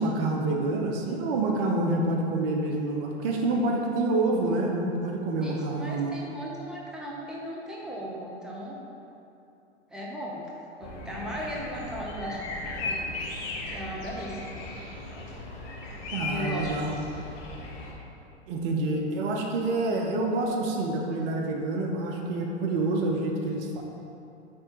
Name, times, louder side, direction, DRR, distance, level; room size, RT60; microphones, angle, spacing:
voice 1, 0.0-6.2 16.1-16.9 18.5-23.8, right 2 dB, 55° right, 1 dB, 0.8 m, -27 dB
voice 2, 5.4-8.8 9.9-10.4 10.8-13.1 13.7-14.5 16.3-16.8, equal, ahead, -4 dB, 0.8 m, -37 dB
sound 1, 10.8-17.9, left 2 dB, 45° left, 1.2 m, -37 dB
9.4 x 3.4 x 3.0 m, 2.7 s
hypercardioid pair, 100°, 34 cm